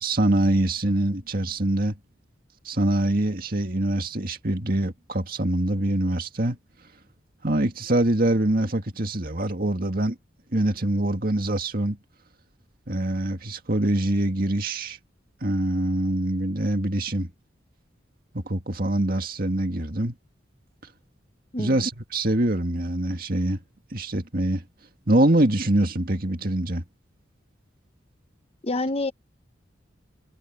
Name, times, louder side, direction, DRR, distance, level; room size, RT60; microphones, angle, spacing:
voice 1, 0.0-2.0 2.7-6.6 7.4-10.2 10.5-12.0 12.9-15.0 15.4-17.3 18.3-20.1 21.6-23.6 23.9-24.6 25.1-26.8, right 1 dB, 50° right, 2.1 m, -24 dB
voice 2, 21.5-21.9 28.6-29.1, left 2 dB, 30° left, 0.9 m, -27 dB
head